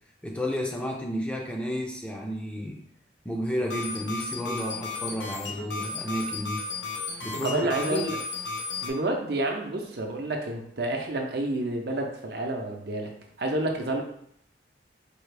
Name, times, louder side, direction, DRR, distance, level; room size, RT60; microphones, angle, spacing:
voice 1, 0.2-2.8 3.2-6.6 7.2-8.1, equal, 5° left, -1 dB, 0.5 m, -32 dB
sound 1, 3.6-8.9, left 3 dB, 85° left, 0.8 m, -34 dB
voice 2, 7.4-8.2 8.8-13.1 13.4-14.0, right 2 dB, 60° right, 2 dB, 0.6 m, -29 dB
4.5 x 2.4 x 3.3 m, 0.71 s
head